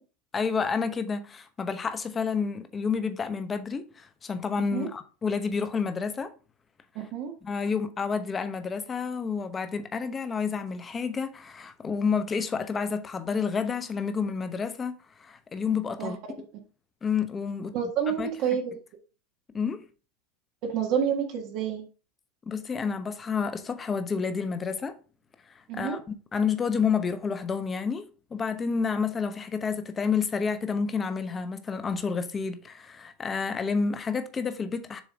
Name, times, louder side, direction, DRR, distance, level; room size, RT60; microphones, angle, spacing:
voice 1, 0.3-6.3 7.4-16.5 17.0-17.7 18.1-18.3 19.5-19.8 22.5-24.9 25.7-28.1 28.3-35.0, left 5 dB, 20° left, 0.9 m, -29 dB
voice 2, 6.9-7.3 15.8-16.1 17.7-18.7 20.6-21.8 25.7-26.0, right 8 dB, 55° right, 1.5 m, -29 dB
7.1 x 3.1 x 5.0 m
supercardioid pair, 125°, 0 cm